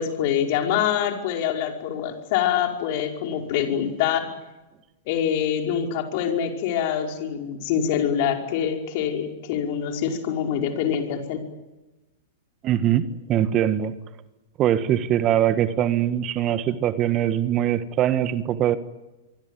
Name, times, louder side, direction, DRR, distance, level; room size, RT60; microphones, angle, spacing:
voice 1, 0.0-4.3 5.1-11.4, left 9 dB, 50° left, 4 dB, 5.3 m, -25 dB
voice 2, 12.6-13.9 14.6-18.8, right 11 dB, 35° right, 13 dB, 1.5 m, -22 dB
25.5 x 24.0 x 9.3 m, 1.1 s
figure-of-eight pair, 100°, 0 cm